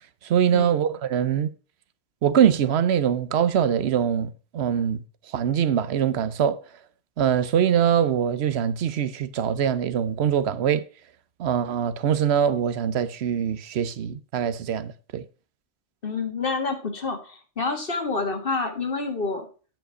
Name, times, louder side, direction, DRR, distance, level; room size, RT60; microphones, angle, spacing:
voice 1, 0.3-1.5 2.2-5.0 5.3-6.6 7.2-10.8 11.4-15.2, right 9 dB, 75° right, 1.0 m, -23 dB
voice 2, 16.0-19.5, left 4 dB, 55° left, 1.7 m, -28 dB
8.9 x 5.4 x 5.4 m
omnidirectional pair, 1.1 m